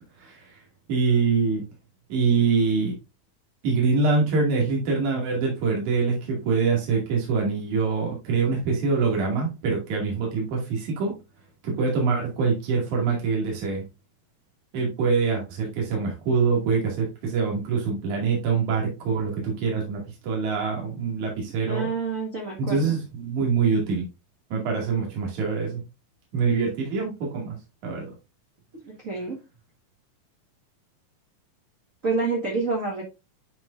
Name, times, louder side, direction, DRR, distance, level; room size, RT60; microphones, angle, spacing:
voice 1, 0.9-1.6 2.1-2.9 3.6-11.1 11.6-13.8 14.7-21.9 22.6-24.0 24.5-25.8 26.3-27.6 27.8-28.1, right 5 dB, 70° right, -1 dB, 3.6 m, -24 dB
voice 2, 21.7-22.9 28.8-29.4 32.0-33.0, right 4 dB, 35° right, -1 dB, 1.4 m, -28 dB
10.5 x 4.8 x 2.5 m, 0.26 s
omnidirectional pair, 3.6 m